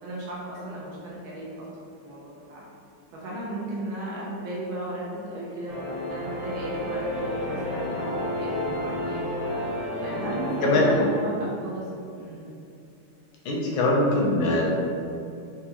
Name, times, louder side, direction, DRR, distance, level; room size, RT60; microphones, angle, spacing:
voice 1, 0.0-2.7 3.1-5.7 6.1-9.5 10.0-12.5, right 1 dB, 80° right, -6 dB, 1.6 m, -35 dB
sound 1, 5.7-11.0, left 1 dB, 25° right, 0.9 m, -30 dB
voice 2, 13.4-14.8, left 2 dB, 80° left, -3 dB, 1.4 m, -22 dB
4.6 x 2.3 x 2.9 m, 2.5 s
omnidirectional pair, 2.2 m